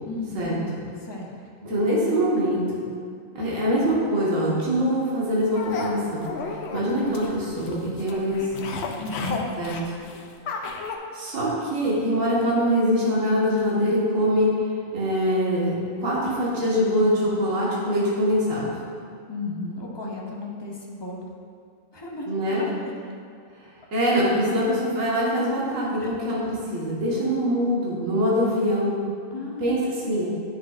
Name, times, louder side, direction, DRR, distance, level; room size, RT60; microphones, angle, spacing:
voice 1, 0.1-0.6 1.0-1.3 9.0-9.5 19.3-21.3 21.9-22.9 26.0-26.1 29.3-30.1, left 2 dB, 25° left, -2 dB, 0.6 m, -34 dB
voice 2, 1.6-2.6 3.3-6.3 6.7-8.7 9.6-9.7 11.1-15.7 16.0-18.6 22.3-22.6 23.9-29.0 29.6-30.3, equal, 65° right, -6 dB, 1.7 m, -23 dB
sound 1, 5.5-11.0, left 4 dB, 60° left, 0.7 m, -33 dB
9.2 x 6.1 x 2.4 m, 2.3 s
omnidirectional pair, 1.5 m